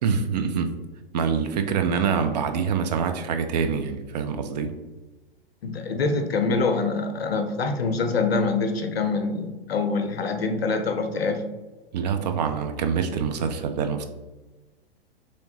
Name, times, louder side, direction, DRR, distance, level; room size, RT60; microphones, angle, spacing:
voice 1, 0.0-0.8 1.1-4.8 11.9-14.0, right 6 dB, 45° right, 7 dB, 0.4 m, -25 dB
voice 2, 5.6-11.5, left 4 dB, 80° left, 7 dB, 0.6 m, -25 dB
3.0 x 3.0 x 2.8 m, 1.2 s
figure-of-eight pair, 105°, 30 cm